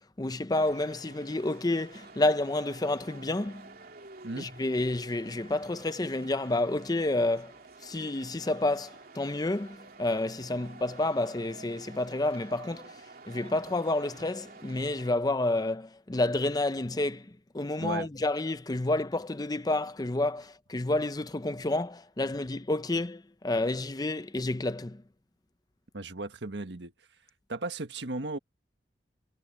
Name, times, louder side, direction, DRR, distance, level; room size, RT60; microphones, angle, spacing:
voice 1, 0.2-3.7 4.4-7.5 7.8-13.0 13.3-25.0, left 2 dB, 20° left, 0.6 m, -29 dB
sound 1, 0.5-15.1, right 3 dB, 55° right, 2.8 m, -50 dB
voice 2, 25.9-26.9 27.5-28.4, right 2 dB, 75° right, 1.6 m, -35 dB
head